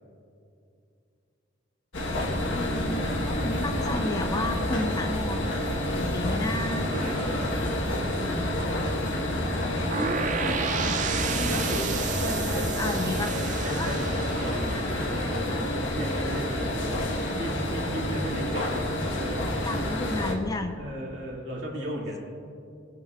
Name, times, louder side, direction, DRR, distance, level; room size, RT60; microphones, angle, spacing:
sound 1, 1.9-20.3, left 1 dB, 85° left, 1.2 m, -29 dB
voice 1, 2.2-5.5 5.8-6.9 10.4-11.6 12.6-13.4 13.7-13.9 14.7-15.9 19.6-20.7 21.0-21.1, left 2 dB, 20° left, 6 dB, 0.4 m, -33 dB
sound 2, 6.1-14.6, equal, 25° right, 2.3 m, -41 dB
voice 2, 6.9-7.6 11.5-15.7 15.9-17.0 17.3-19.6 20.8-22.2, equal, 70° right, -3 dB, 2.2 m, -35 dB
sound 3, 9.9-15.8, right 7 dB, 40° right, 0.4 m, -33 dB
20.0 x 6.7 x 2.3 m, 2.5 s
head